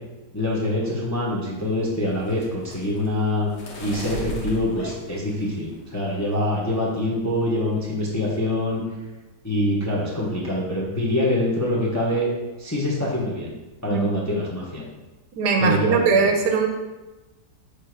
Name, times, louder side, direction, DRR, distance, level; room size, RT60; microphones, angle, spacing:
voice 1, 0.3-3.5 3.8-8.8 9.4-12.3 12.6-13.5 13.8-14.8 15.6-16.1, left 1 dB, 15° left, -5 dB, 0.7 m, -25 dB
sound 1, 1.6-6.0 6.4-6.8 7.1-7.4 7.7-8.3, equal, 90° left, 1.8 m, -38 dB
voice 2, 15.3-16.7, right 5 dB, 80° right, 3 dB, 1.3 m, -20 dB
6.6 x 3.3 x 4.5 m, 1.1 s
omnidirectional pair, 1.8 m